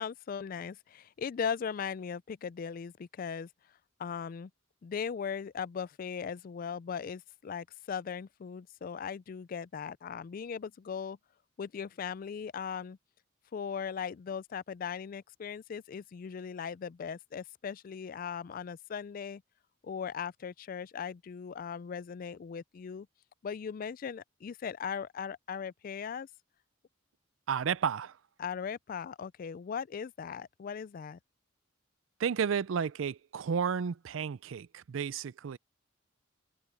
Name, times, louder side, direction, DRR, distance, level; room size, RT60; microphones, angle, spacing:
voice 1, 0.0-3.5 4.0-4.5 4.8-11.2 11.6-13.0 13.5-19.4 19.8-23.1 23.4-26.3 28.4-31.2, left 7 dB, 45° left, 0.3 m, -38 dB
voice 2, 27.5-28.2 32.2-35.6, right 7 dB, 80° right, 0.4 m, -32 dB
open air
head